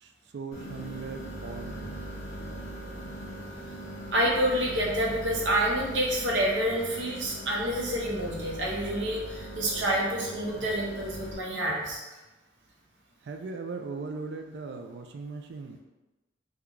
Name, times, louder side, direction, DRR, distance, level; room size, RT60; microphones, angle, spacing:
voice 1, 0.0-1.9 10.5-10.7 13.2-15.8, right 4 dB, 60° right, 5 dB, 0.3 m, -39 dB
sound 1, 0.5-11.3, right 1 dB, 50° left, 0.9 m, -40 dB
voice 2, 4.1-12.0, right 1 dB, 80° right, -3 dB, 0.8 m, -28 dB
3.5 x 2.3 x 3.0 m, 1.1 s
head